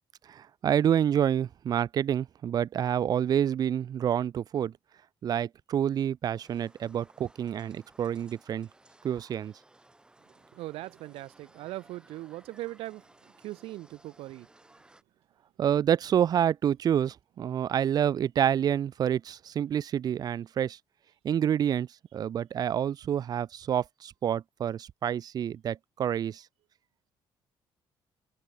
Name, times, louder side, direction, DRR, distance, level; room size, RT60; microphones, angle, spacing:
voice 1, 0.3-4.7 5.2-8.7 9.0-9.5 15.6-20.8 21.2-26.4, right 9 dB, 45° right, 0.7 m, -28 dB
sound 1, 6.3-15.0, right 2 dB, 10° right, 3.3 m, -59 dB
voice 2, 10.5-13.1 13.4-14.5, right 17 dB, 85° right, 0.4 m, -40 dB
cardioid pair, 150°, 10 cm